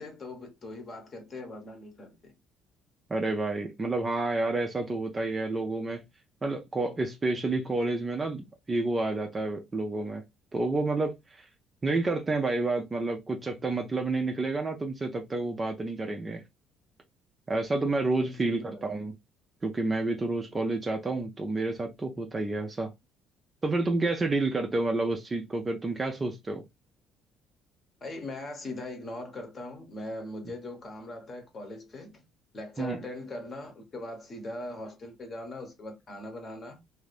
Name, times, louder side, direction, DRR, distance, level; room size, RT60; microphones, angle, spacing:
voice 1, 0.0-2.3 18.2-18.8 28.0-32.2 32.5-36.8, left 2 dB, 30° left, 0.9 m, -40 dB
voice 2, 3.1-6.0 6.4-10.2 10.5-11.5 11.8-16.4 17.5-19.1 19.6-22.9 23.6-26.6 32.8-33.0, right 2 dB, 20° right, 0.4 m, -29 dB
2.5 x 2.4 x 3.2 m
cardioid pair, 155°, 0 cm